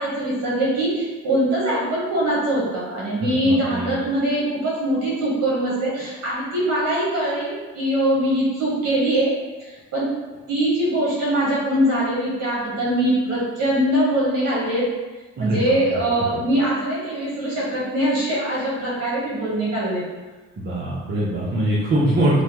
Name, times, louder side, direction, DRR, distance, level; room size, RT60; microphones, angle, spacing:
voice 1, 0.0-9.3 9.6-10.1 10.5-14.9 15.4-20.0, right 1 dB, 55° right, -7 dB, 1.1 m, -22 dB
voice 2, 3.3-4.0 15.4-16.0 20.6-22.4, right 1 dB, 35° right, -8 dB, 0.7 m, -23 dB
3.1 x 2.2 x 2.9 m, 1.2 s
cardioid pair, 90°, 30 cm